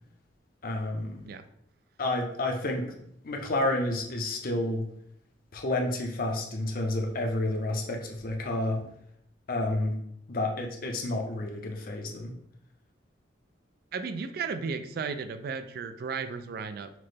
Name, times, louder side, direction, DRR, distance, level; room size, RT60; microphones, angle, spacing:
voice 1, 0.6-1.2 2.0-4.9 5.5-8.9 9.5-9.9 10.3-12.3, left 1 dB, 50° left, 2 dB, 0.7 m, -30 dB
voice 2, 13.9-16.9, right 5 dB, 55° right, 10 dB, 0.3 m, -34 dB
5.9 x 2.1 x 3.2 m, 0.72 s
head